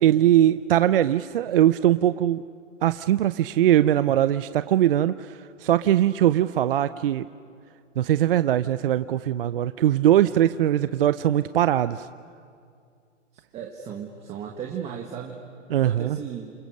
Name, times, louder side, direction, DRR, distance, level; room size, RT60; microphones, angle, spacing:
voice 1, 0.0-2.4 2.8-7.3 8.0-12.1 15.7-16.2, right 12 dB, 50° right, 13 dB, 0.6 m, -21 dB
voice 2, 13.5-15.4 15.8-16.5, right 8 dB, 15° right, 1 dB, 1.6 m, -35 dB
29.5 x 28.5 x 6.6 m, 2.3 s
hypercardioid pair, 155°, 37 cm